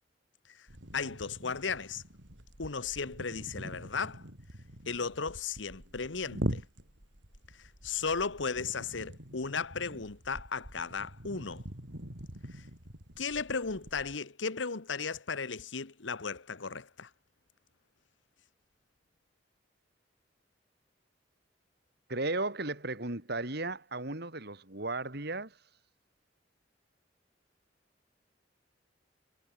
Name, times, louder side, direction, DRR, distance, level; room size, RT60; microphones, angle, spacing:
sound 1, 0.7-14.2, right 1 dB, 75° right, 5.7 m, -43 dB
voice 1, 0.9-2.0 2.6-4.2 4.9-6.6 7.5-11.6 12.5-12.7 13.2-17.1, left 5 dB, 80° left, 1.3 m, -35 dB
voice 2, 22.1-25.6, right 2 dB, 60° right, 3.9 m, -35 dB
head